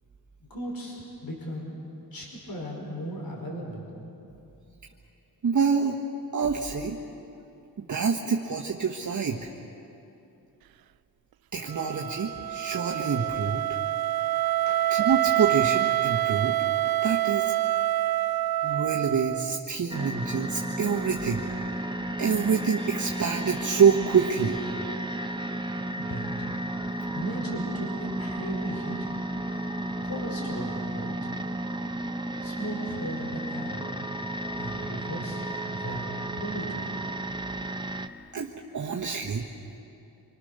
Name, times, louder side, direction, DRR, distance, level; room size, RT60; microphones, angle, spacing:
voice 1, 0.4-1.8 2.1-3.9 14.7-14.8 26.0-29.1 30.0-31.3 32.4-33.9 34.6-35.4 35.7-36.9, equal, 60° left, -1 dB, 5.2 m, -37 dB
voice 2, 5.4-6.0 6.3-7.0 7.8-9.5 11.5-13.6 14.9-16.6 17.0-17.5 18.6-21.6 22.2-24.6 38.3-39.5, right 6 dB, 50° right, -1 dB, 1.4 m, -26 dB
Wind instrument woodwind instrument, 11.7-19.7, right 14 dB, 65° right, 0.5 m, -26 dB
sound 1, 19.9-38.1, right 1 dB, 10° right, 1.0 m, -33 dB
26.5 x 25.0 x 6.7 m, 2.8 s
wide cardioid pair, 105°, 38 cm